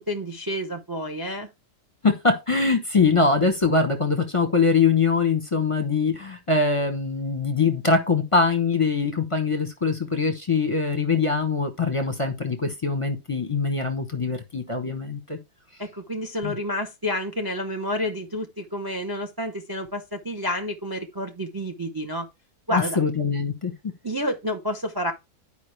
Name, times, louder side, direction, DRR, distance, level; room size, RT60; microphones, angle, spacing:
voice 1, 0.0-1.5 15.8-22.3 22.7-23.0 24.0-25.1, equal, 20° right, 0.5 m, -29 dB
voice 2, 2.0-15.4 16.4-16.5 22.7-23.7, left 4 dB, 25° left, 0.9 m, -23 dB
10.5 x 5.0 x 3.3 m
omnidirectional pair, 1.7 m